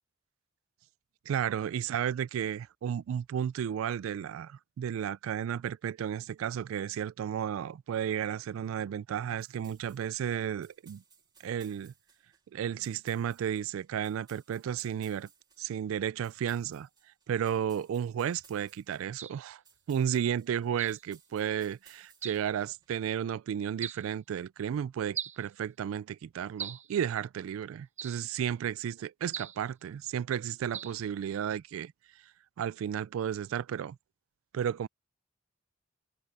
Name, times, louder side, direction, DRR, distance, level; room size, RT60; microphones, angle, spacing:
voice 1, 1.3-11.0 11.4-11.9 12.5-15.3 15.6-16.9 17.3-19.6 19.9-31.9 32.6-34.0 34.5-34.9, right 9 dB, 80° right, 0.3 m, -33 dB
sound 1, 9.4-22.9, right 6 dB, 20° right, 2.2 m, -63 dB
sound 2, 19.2-19.4 20.8-21.0 22.2-22.5 23.8-24.1 25.1-25.5 26.6-26.9 28.0-28.3 29.3-29.6 30.7-31.0, right 8 dB, 35° right, 0.8 m, -40 dB
head